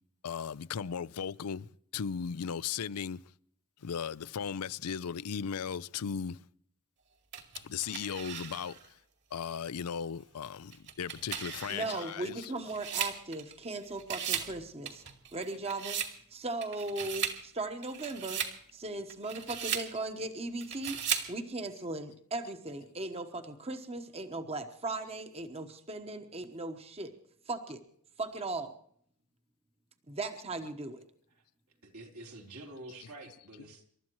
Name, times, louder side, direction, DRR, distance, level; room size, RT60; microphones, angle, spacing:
voice 1, 0.2-3.2 3.8-6.4 7.6-8.8 9.3-12.4, left 7 dB, 90° left, 0.5 m, -37 dB
sound 1, 7.3-8.9 9.4-9.5 10.7-13.7 14.0-14.5 14.9-16.2 16.6-17.4 17.8-18.6 19.1-19.9 20.6-21.3, right 8 dB, 50° right, 2.3 m, -37 dB
voice 2, 11.7-15.0 15.3-16.0 16.3-18.4 18.7-21.0 21.3-27.1 27.5-27.8 28.2-28.7 30.1-31.0, right 2 dB, 25° right, 1.1 m, -38 dB
voice 3, 31.8-33.9, right 2 dB, 80° right, 3.8 m, -48 dB
28.0 x 13.0 x 3.1 m
head